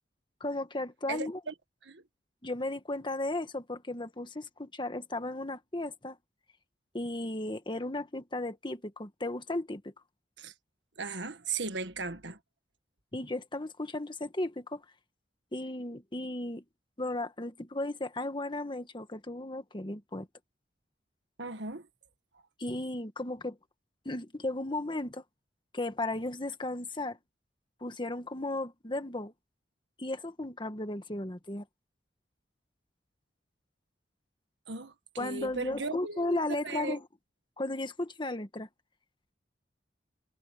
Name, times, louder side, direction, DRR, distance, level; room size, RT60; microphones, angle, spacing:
voice 1, 0.4-1.4 2.4-6.2 6.9-9.9 13.1-14.8 15.5-16.6 17.0-20.3 22.6-23.6 24.0-25.2 25.7-27.2 27.8-29.3 30.0-31.6 35.2-37.1 37.6-38.7, left 2 dB, 25° left, 1.6 m, -35 dB
voice 2, 1.1-1.5 1.8-2.0 10.4-10.5 11.0-12.4 21.4-21.9 34.7-37.0, right 4 dB, 85° right, 1.6 m, -37 dB
head